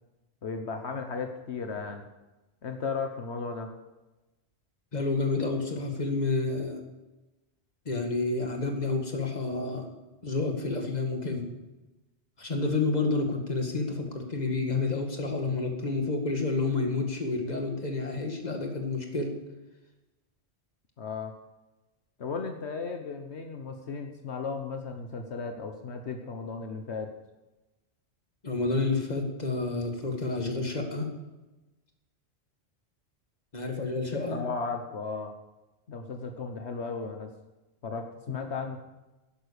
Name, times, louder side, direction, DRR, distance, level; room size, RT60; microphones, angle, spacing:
voice 1, 0.4-2.1 2.6-3.7 21.0-21.3 22.2-27.1 34.3-35.3 35.9-37.3 37.8-38.8, left 4 dB, 80° left, 5 dB, 1.4 m, -35 dB
voice 2, 4.9-6.8 7.9-9.9 10.2-11.5 12.4-19.3 28.4-31.1 33.5-34.4, left 3 dB, 40° left, 3 dB, 2.1 m, -29 dB
11.5 x 11.0 x 6.8 m, 1.1 s
omnidirectional pair, 1.1 m